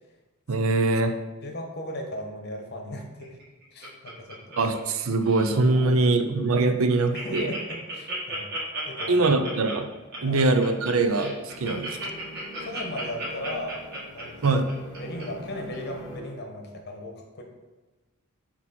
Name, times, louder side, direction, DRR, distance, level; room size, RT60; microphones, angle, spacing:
voice 1, 0.5-1.1 4.6-7.5 9.1-9.9 10.2-12.1 14.4-14.7, right 3 dB, 70° right, 8 dB, 0.5 m, -23 dB
voice 2, 1.4-3.4 3.7-4.6 5.7-5.9 7.1-8.5 8.8-9.4 10.2-10.4 11.6-11.8 12.6-13.8 14.1-14.6 15.0-17.4, left 1 dB, 50° left, 2 dB, 1.0 m, -37 dB
Laughter, 3.2-5.0 5.2-5.6 6.1-6.2 6.5-6.6 6.8-15.2 15.7-15.8, right 1 dB, 45° right, 1.5 m, -35 dB
sound 1, 9.8-16.2, equal, 20° left, 1.9 m, -44 dB
8.4 x 2.9 x 4.2 m, 1.2 s
head